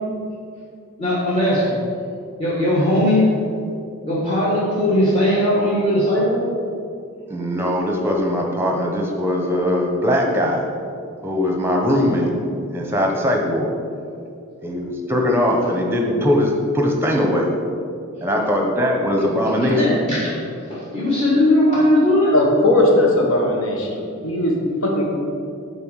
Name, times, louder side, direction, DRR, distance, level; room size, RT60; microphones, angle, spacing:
voice 1, 1.0-1.7 2.4-3.3 4.0-6.5 19.6-20.3 20.7-22.3, left 1 dB, 25° left, -8 dB, 1.4 m, -18 dB
voice 2, 7.3-10.6 11.2-12.3 12.7-13.7 14.6-17.5 18.2-19.8, left 1 dB, 10° right, 1 dB, 0.8 m, -20 dB
voice 3, 22.3-25.1, left 1 dB, 75° left, -1 dB, 1.5 m, -18 dB
7.0 x 4.3 x 6.4 m, 2.4 s
head